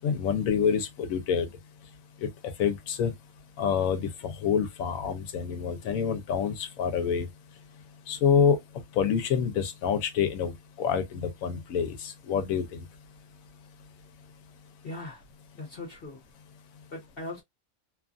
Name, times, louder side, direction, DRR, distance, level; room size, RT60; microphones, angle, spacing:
voice 1, 0.0-1.5 2.2-2.3 2.6-3.1 3.6-7.3 8.1-8.6 9.0-10.5 10.8-12.8, left 7 dB, 75° left, 1.1 m, -27 dB
voice 2, 14.8-15.2 15.5-16.2 16.9-17.4, left 2 dB, 45° left, 1.0 m, -39 dB
3.0 x 2.3 x 2.4 m
omnidirectional pair, 1.5 m